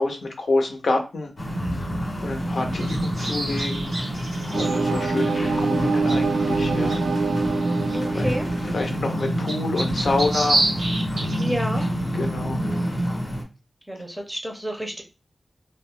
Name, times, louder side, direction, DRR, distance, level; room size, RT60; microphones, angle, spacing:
voice 1, 0.0-1.3 2.2-3.9 4.5-7.0 8.1-8.3 8.7-10.6 11.1-11.3 12.2-12.6, left 2 dB, 70° left, 3 dB, 0.6 m, -27 dB
sound 1, 1.4-13.4, equal, 35° left, 0.7 m, -27 dB
sound 2, 2.7-12.1, right 2 dB, 85° right, 0.9 m, -31 dB
sound 3, 4.5-9.7, right 4 dB, 65° right, 0.4 m, -26 dB
voice 2, 7.9-8.5 11.4-11.9 13.9-15.0, equal, 10° right, 2 dB, 0.7 m, -30 dB
2.3 x 2.1 x 3.6 m, 0.30 s
wide cardioid pair, 115°, 0 cm